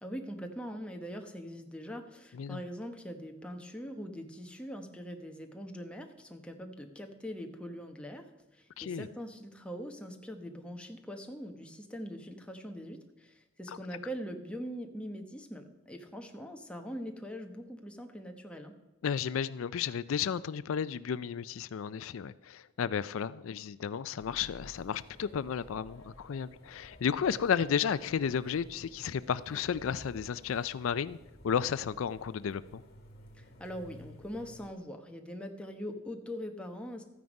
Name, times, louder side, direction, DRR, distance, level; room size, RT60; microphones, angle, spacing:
voice 1, 0.0-8.3 8.5-18.7 33.3-37.0, equal, 5° left, 1.1 m, -42 dB
voice 2, 8.8-9.1 13.7-13.8 19.0-31.2 31.4-32.8, left 7 dB, 80° left, 0.4 m, -33 dB
sound 1, 24.2-34.7, left 1 dB, 50° left, 2.2 m, -54 dB
13.5 x 9.4 x 5.3 m
head